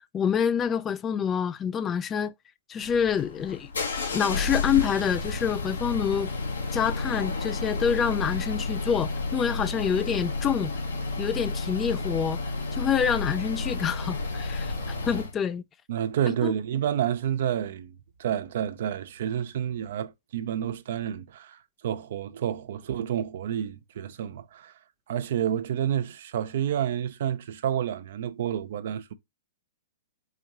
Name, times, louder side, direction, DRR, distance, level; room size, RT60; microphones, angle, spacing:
voice 1, 0.1-2.3 2.7-3.7 4.1-6.3 6.7-10.7 11.2-12.4 12.7-15.6 16.3-16.5, left 7 dB, 20° left, 0.3 m, -27 dB
sound 1, 2.8-15.3, left 3 dB, 85° left, 1.3 m, -31 dB
voice 2, 15.9-24.7 25.1-29.1, right 10 dB, 65° right, 0.5 m, -29 dB
4.9 x 2.6 x 2.9 m
hypercardioid pair, 120°, 0 cm